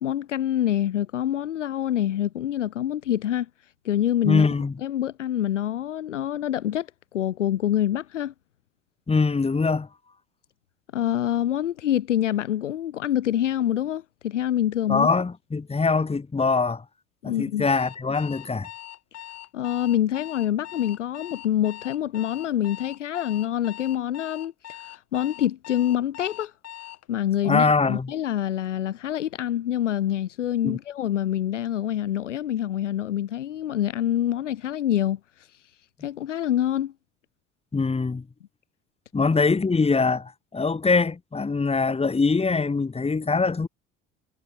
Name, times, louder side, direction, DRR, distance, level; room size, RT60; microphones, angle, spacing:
voice 1, 0.0-3.5 3.8-4.4 4.8-6.9 7.1-8.3 10.9-15.1 17.2-17.7 19.5-24.5 24.9-26.5 27.1-35.2 36.0-36.9, left 11 dB, 75° left, 0.9 m, -26 dB
voice 2, 4.2-4.7 9.1-9.9 14.9-16.8 17.2-18.7 27.4-28.1 30.6-30.8 37.7-38.3 39.1-43.7, left 4 dB, 15° left, 2.7 m, -23 dB
Alarm, 17.7-27.1, left 12 dB, 45° left, 7.9 m, -42 dB
figure-of-eight pair, 60°, 36 cm